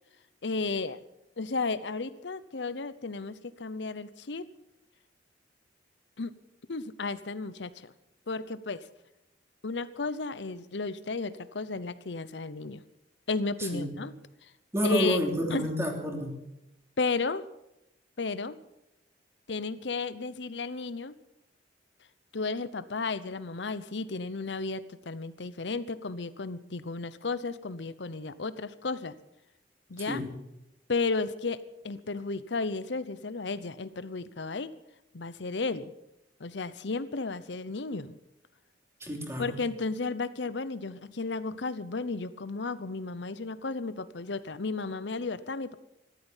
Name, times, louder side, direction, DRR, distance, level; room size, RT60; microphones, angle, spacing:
voice 1, 0.4-1.0 1.4-4.5 6.2-6.3 6.7-7.9 8.3-8.9 9.6-12.8 13.3-14.1 14.4-14.5 14.8-15.2 15.5-15.7 17.0-17.4 18.2-18.6 19.5-21.1 22.3-29.1 29.9-30.2 30.9-34.7 35.1-35.9 36.4-38.2 39.4-45.7, left 3 dB, 75° left, 15 dB, 0.8 m, -33 dB
voice 2, 14.7-16.3 30.1-30.3 39.0-39.6, equal, 15° right, 1 dB, 3.1 m, -29 dB
15.0 x 12.5 x 7.3 m, 0.87 s
head